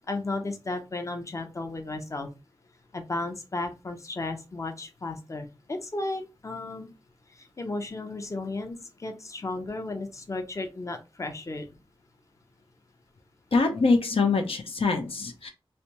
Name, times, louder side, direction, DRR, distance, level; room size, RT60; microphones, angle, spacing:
voice 1, 0.0-2.3 2.9-6.9 7.4-11.7, left 2 dB, 30° left, 5 dB, 0.6 m, -34 dB
voice 2, 13.5-15.5, left 4 dB, 75° left, 4 dB, 0.6 m, -24 dB
3.2 x 2.7 x 2.9 m, 0.28 s
wide cardioid pair, 90°, 10 cm